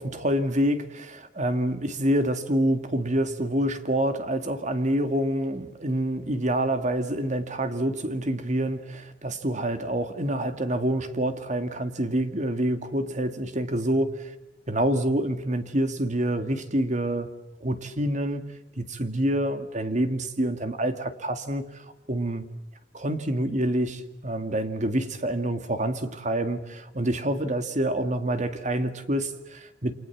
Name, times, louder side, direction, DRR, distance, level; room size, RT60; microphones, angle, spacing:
voice 1, 0.0-14.3 14.7-17.3 17.6-18.5 18.8-21.7 22.1-22.4 22.9-29.9, right 1 dB, 45° right, 9 dB, 2.1 m, -27 dB
29.5 x 26.0 x 7.3 m, 0.85 s
head